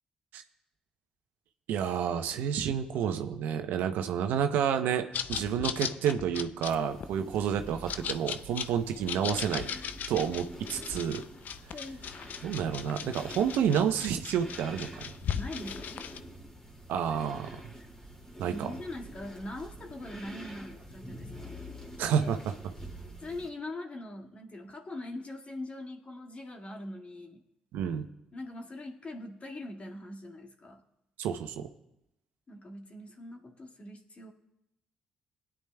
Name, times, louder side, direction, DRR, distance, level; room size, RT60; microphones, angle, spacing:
voice 1, 1.7-9.7 10.1-11.2 12.4-15.0 16.9-17.6 18.4-18.7 22.0-22.4 27.7-28.0 31.2-31.7, right 8 dB, 75° right, 8 dB, 0.7 m, -30 dB
sound 1, 5.1-16.2, left 8 dB, 60° left, 0.5 m, -38 dB
sound 2, 6.6-23.5, equal, 20° left, 2.5 m, -47 dB
voice 2, 11.7-12.0 15.3-15.9 18.5-21.6 22.0-22.3 23.2-27.4 28.3-30.8 32.5-34.3, left 1 dB, 40° left, 2 dB, 1.9 m, -42 dB
20.5 x 9.9 x 2.3 m, 0.87 s
hypercardioid pair, 45°, 3 cm